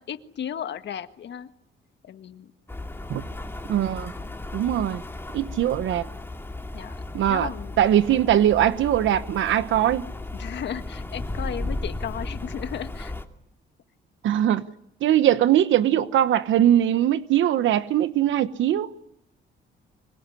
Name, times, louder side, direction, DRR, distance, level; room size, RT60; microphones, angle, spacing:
voice 1, 0.0-1.5 2.0-2.5 4.2-4.3 6.7-7.0 7.3-7.8 10.3-13.1, left 9 dB, 65° left, 1.6 m, -35 dB
Rain, 2.7-13.3, left 2 dB, 10° left, 2.6 m, -35 dB
voice 2, 3.7-4.1 4.5-5.0 5.3-6.1 7.1-7.5 7.8-10.1 14.2-14.7 15.0-18.9, right 11 dB, 75° right, 1.1 m, -21 dB
25.0 x 22.5 x 9.9 m
cardioid pair, 90°, 20 cm